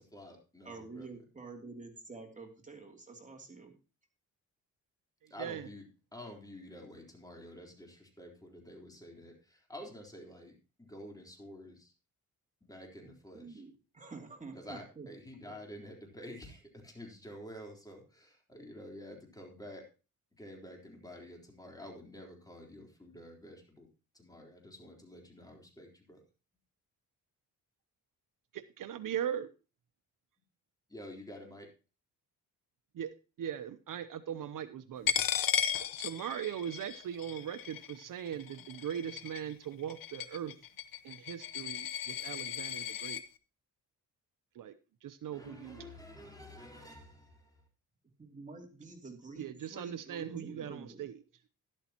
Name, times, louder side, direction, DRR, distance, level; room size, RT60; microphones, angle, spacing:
voice 1, 0.0-1.2 5.3-5.8 6.1-11.9 12.6-13.6 14.5-19.8 20.4-23.9 24.1-26.2 30.9-31.7 45.3-47.6, left 1 dB, 10° left, 1 dB, 3.8 m, -49 dB
voice 2, 0.6-3.7 13.0-15.1 15.4-15.5 48.2-51.0, right 3 dB, 20° right, 2 dB, 2.8 m, -48 dB
voice 3, 5.2-5.7 28.5-29.5 32.9-35.1 36.0-40.5 41.0-43.2 44.5-44.7 45.0-45.9 49.4-51.1, right 9 dB, 65° right, 12 dB, 0.8 m, -40 dB
Coin (dropping), 35.1-43.2, left 9 dB, 70° left, 1.0 m, -36 dB
12.5 x 11.5 x 2.9 m, 0.33 s
cardioid pair, 105°, 35 cm